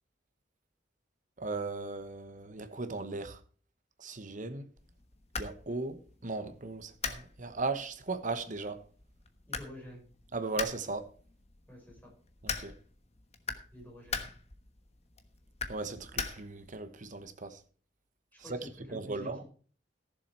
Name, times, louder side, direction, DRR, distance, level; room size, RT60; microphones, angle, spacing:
voice 1, 1.4-3.4 4.0-4.7 5.4-8.8 10.3-11.1 12.4-12.7 15.7-17.6 18.5-19.4, right 3 dB, 45° right, 1.1 m, -37 dB
sound 1, 4.8-16.8, left 5 dB, 35° left, 1.2 m, -42 dB
voice 2, 9.5-10.0 11.7-12.1 13.7-14.3 18.3-19.5, left 1 dB, 10° left, 5.1 m, -49 dB
15.0 x 7.2 x 4.4 m
head